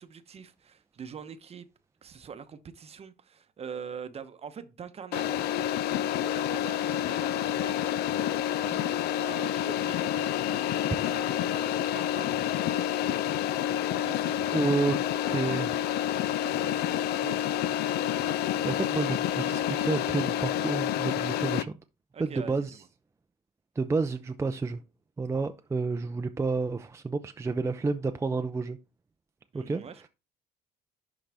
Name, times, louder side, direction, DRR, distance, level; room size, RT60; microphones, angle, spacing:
voice 1, 0.0-1.7 2.0-5.8 6.2-8.3 8.6-8.9 9.2-12.8 14.0-14.7 15.3-15.8 16.3-17.4 22.1-22.6 29.5-30.1, right 6 dB, 35° right, 0.8 m, -44 dB
sound 1, 5.1-21.6, left 11 dB, 70° left, 0.5 m, -28 dB
voice 2, 14.5-15.0 15.3-15.7 18.6-21.8 22.2-22.8 23.8-24.8 25.2-28.8 29.5-29.8, right 4 dB, 15° right, 0.5 m, -30 dB
11.0 x 3.9 x 3.4 m
cardioid pair, 110°, 17 cm